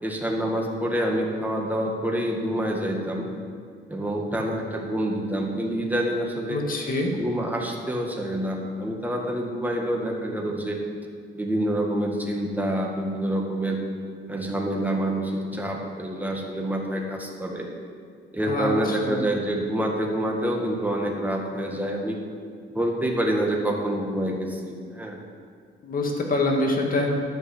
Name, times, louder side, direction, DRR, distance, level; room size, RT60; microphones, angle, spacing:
voice 1, 0.0-3.3 3.9-6.6 7.1-10.8 11.3-13.8 14.3-17.7 18.3-22.2 22.7-25.2, right 1 dB, 10° right, 0 dB, 1.8 m, -27 dB
voice 2, 6.5-7.1 18.5-18.7 19.1-19.3 25.8-27.1, left 2 dB, 40° left, 0 dB, 2.0 m, -25 dB
11.5 x 5.3 x 8.2 m, 2.2 s
cardioid pair, 110°, 21 cm